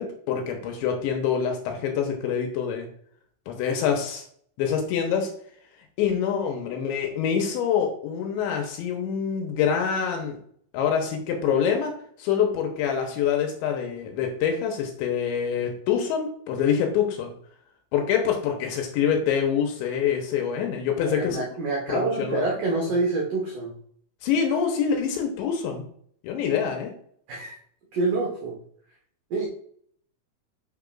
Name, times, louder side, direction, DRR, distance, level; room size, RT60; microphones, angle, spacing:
voice 1, 0.0-2.9 3.5-4.2 4.6-5.3 6.0-10.4 10.7-11.9 12.2-17.3 17.9-21.4 21.9-22.5 24.2-25.8 26.2-26.9, left 7 dB, 75° left, 3 dB, 2.9 m, -25 dB
voice 2, 21.1-23.7 27.3-27.5 27.9-28.6 29.3-29.5, right 3 dB, 80° right, -3 dB, 1.8 m, -27 dB
10.5 x 5.7 x 2.5 m, 0.62 s
omnidirectional pair, 5.8 m